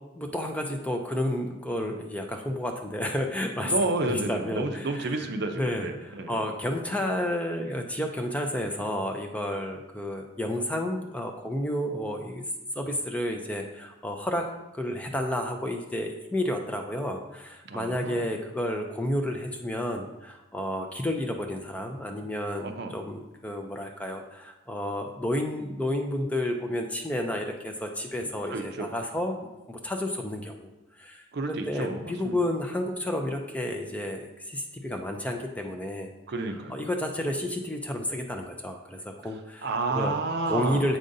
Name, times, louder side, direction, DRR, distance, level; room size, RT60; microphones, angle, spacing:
voice 1, 0.2-3.7 4.0-5.3 5.6-12.4 12.8-14.4 14.7-29.4 29.7-30.7 31.0-36.1 36.7-40.1 40.5-41.0, left 1 dB, 5° left, 3 dB, 0.4 m, -31 dB
voice 2, 3.7-6.4 17.6-18.2 22.6-23.0 28.5-28.9 31.3-32.5 36.3-36.8 39.6-40.9, right 3 dB, 55° right, 5 dB, 0.5 m, -30 dB
7.5 x 5.0 x 2.6 m, 1.0 s
head